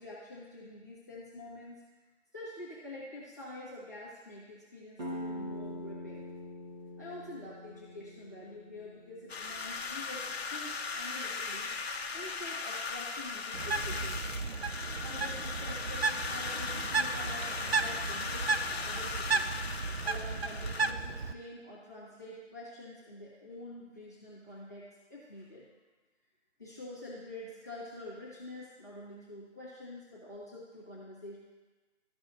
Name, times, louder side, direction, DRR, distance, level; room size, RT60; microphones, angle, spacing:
voice 1, 0.0-1.8 2.3-6.3 7.0-11.7 12.1-14.3 15.0-19.5 20.0-25.7 26.6-31.4, left 1 dB, 15° left, -10 dB, 0.9 m, -47 dB
sound 1, 5.0-10.4, left 1 dB, 35° right, 1.6 m, -44 dB
sound 2, 9.3-20.9, left 4 dB, 55° left, 0.7 m, -38 dB
Bird, 13.5-21.3, right 4 dB, 55° right, 0.5 m, -34 dB
13.5 x 4.7 x 2.6 m, 1.2 s
figure-of-eight pair, 170°, 37 cm